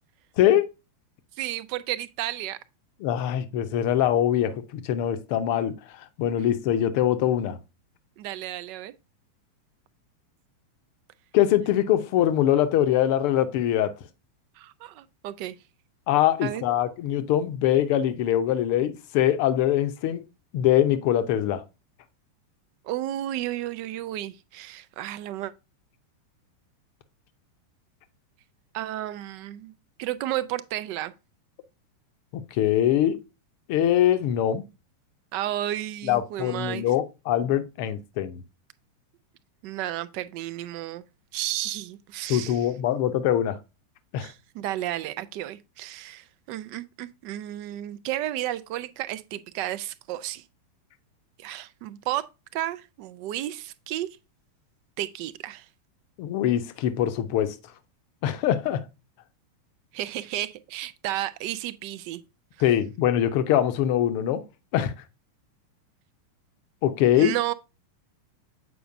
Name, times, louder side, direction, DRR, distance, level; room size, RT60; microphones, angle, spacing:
voice 1, 0.4-0.7 3.0-7.6 11.3-13.9 16.1-20.2 20.5-21.6 32.3-33.2 33.7-34.6 36.0-38.4 42.3-43.6 44.1-44.3 56.2-57.6 58.2-58.8 62.6-64.4 64.7-64.9 66.8-67.3, left 11 dB, 45° left, 0.7 m, -23 dB
voice 2, 1.4-2.6 8.2-8.9 14.6-15.6 16.4-16.6 22.8-25.5 28.7-29.7 30.0-31.1 35.3-36.8 39.6-41.0 41.3-42.7 44.2-50.4 51.4-52.3 52.5-54.1 55.0-55.7 59.9-62.2 67.1-67.5, right 13 dB, 45° right, 0.4 m, -32 dB
7.8 x 4.9 x 2.5 m
figure-of-eight pair, 90°, 0 cm